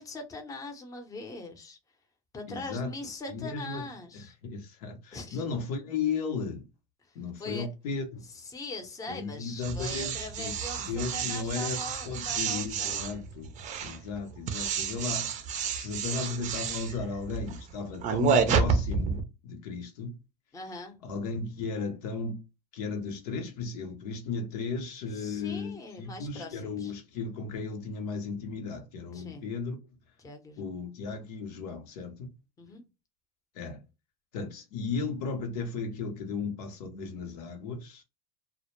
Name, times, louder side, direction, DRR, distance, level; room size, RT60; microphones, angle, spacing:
voice 1, 0.0-1.8 2.3-4.3 5.1-5.4 7.1-7.7 8.3-13.0 20.5-21.0 25.1-26.9 29.1-29.4 30.2-30.7 32.6-32.9, left 2 dB, 15° left, 0.6 m, -42 dB
voice 2, 2.5-2.9 3.3-3.8 4.1-6.7 7.1-8.2 9.1-13.5 13.8-20.2 21.0-22.4 22.7-29.8 30.6-32.3 33.5-33.8 34.3-38.0, left 4 dB, 90° left, 0.7 m, -35 dB
sound 1, 9.6-19.2, right 6 dB, 40° right, 0.5 m, -30 dB
2.1 x 2.0 x 2.9 m
supercardioid pair, 115°, 20 cm